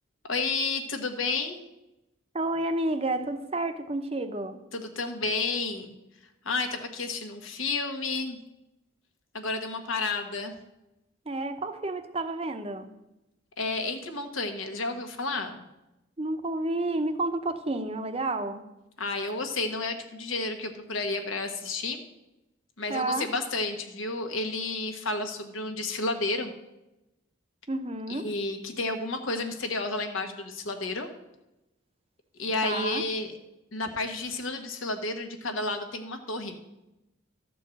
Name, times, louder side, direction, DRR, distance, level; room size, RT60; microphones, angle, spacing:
voice 1, 0.3-1.6 4.7-5.9 6.4-8.4 9.3-10.5 13.6-15.6 19.0-22.0 22.8-26.5 28.1-31.1 32.4-33.3 33.7-36.6, left 3 dB, 80° left, 6 dB, 1.3 m, -31 dB
voice 2, 2.3-4.6 11.3-12.9 16.2-18.6 22.9-23.3 27.7-28.3 32.6-33.0, right 2 dB, 30° right, 8 dB, 0.7 m, -30 dB
13.0 x 4.6 x 7.7 m, 0.95 s
head